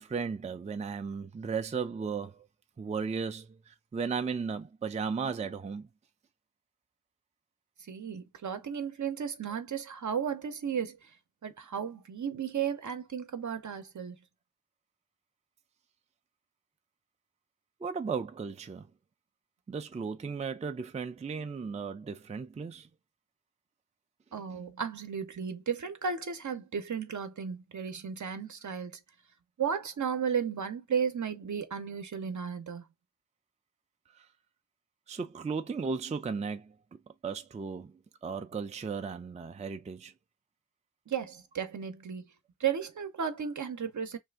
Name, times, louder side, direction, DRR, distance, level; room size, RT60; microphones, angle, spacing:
voice 1, 0.0-2.5 2.8-5.9 17.8-18.9 19.7-22.9 34.2-34.3 35.1-36.7 37.2-37.9 38.2-40.1, right 5 dB, 25° right, 0.3 m, -35 dB
voice 2, 7.9-11.1 11.4-14.2 24.3-29.0 29.6-32.8 41.1-42.3 42.6-44.2, right 7 dB, 65° right, 0.7 m, -34 dB
2.6 x 2.5 x 3.4 m
wide cardioid pair, 65°, 31 cm